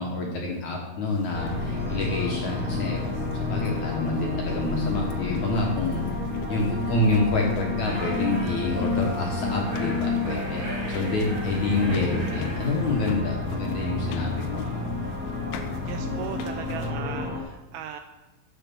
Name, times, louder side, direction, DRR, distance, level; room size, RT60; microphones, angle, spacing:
voice 1, 0.0-3.1 3.5-6.0 6.5-14.8, left 2 dB, 60° left, 0 dB, 2.1 m, -27 dB
sound 1, 1.0-16.9, left 6 dB, 85° left, 3.0 m, -45 dB
sound 2, 1.3-17.4, left 3 dB, 5° right, 1.3 m, -30 dB
sound 3, 7.8-13.1, left 1 dB, 65° right, 0.5 m, -38 dB
voice 2, 15.9-18.0, right 10 dB, 80° right, 7 dB, 2.3 m, -37 dB
11.0 x 8.0 x 6.1 m, 1.0 s
omnidirectional pair, 4.9 m